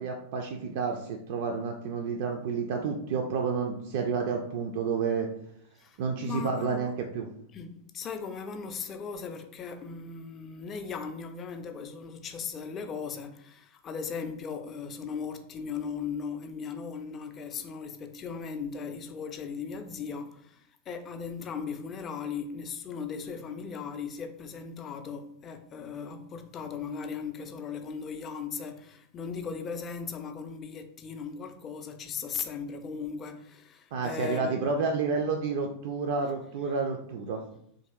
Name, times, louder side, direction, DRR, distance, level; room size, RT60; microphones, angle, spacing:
voice 1, 0.0-5.3 6.0-7.3 33.9-37.4, right 5 dB, 50° right, 0.3 m, -30 dB
voice 2, 5.8-6.9 7.5-34.9, left 6 dB, 25° left, 0.4 m, -38 dB
3.0 x 2.5 x 2.9 m
figure-of-eight pair, 90°, 0 cm